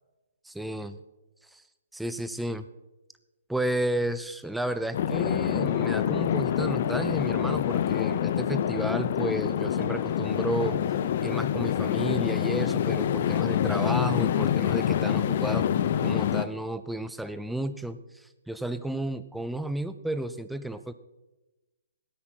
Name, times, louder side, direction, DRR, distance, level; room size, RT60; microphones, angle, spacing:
voice 1, 0.4-1.0 1.5-1.6 1.9-2.7 3.5-10.8 11.2-15.7 16.0-20.9, right 1 dB, ahead, 12 dB, 0.5 m, -32 dB
sound 1, 4.9-16.4, left 10 dB, 45° left, 0.6 m, -26 dB
17.0 x 10.0 x 4.5 m, 1.1 s
hypercardioid pair, 160°, 0 cm